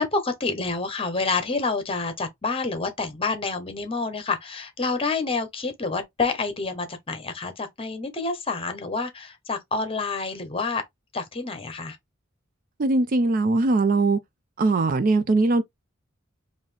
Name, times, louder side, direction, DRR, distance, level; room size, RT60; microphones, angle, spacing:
voice 1, 0.0-10.8 11.1-12.0, left 3 dB, 25° left, 1.0 m, -28 dB
voice 2, 12.8-14.2 14.6-15.6, right 3 dB, 40° right, 0.4 m, -20 dB
3.9 x 2.7 x 3.3 m
head